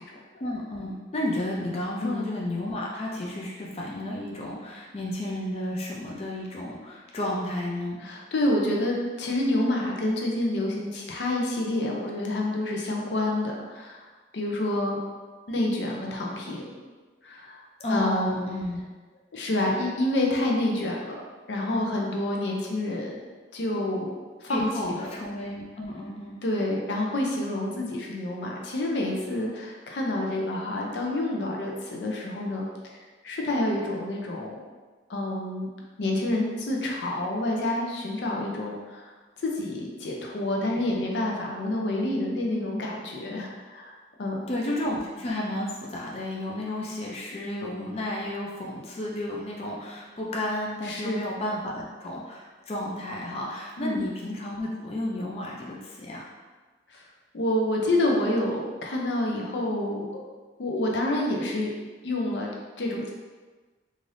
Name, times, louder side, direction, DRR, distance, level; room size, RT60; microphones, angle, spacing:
voice 1, 0.4-8.0 17.8-18.8 24.5-26.4 40.6-41.0 44.5-56.2, left 1 dB, 35° left, -3 dB, 0.4 m, -32 dB
voice 2, 8.0-14.1 14.3-15.0 15.5-16.8 17.2-17.6 17.9-18.5 19.3-21.1 21.5-23.2 23.5-24.1 24.4-25.1 26.4-32.7 33.2-34.6 35.1-35.7 36.0-39.0 39.4-44.4 50.8-51.2 53.8-54.0 56.9-57.0 57.3-60.2 60.6-61.7 62.0-62.5 62.8-63.1, left 1 dB, 85° left, -1 dB, 0.5 m, -28 dB
3.2 x 2.5 x 2.6 m, 1.3 s
head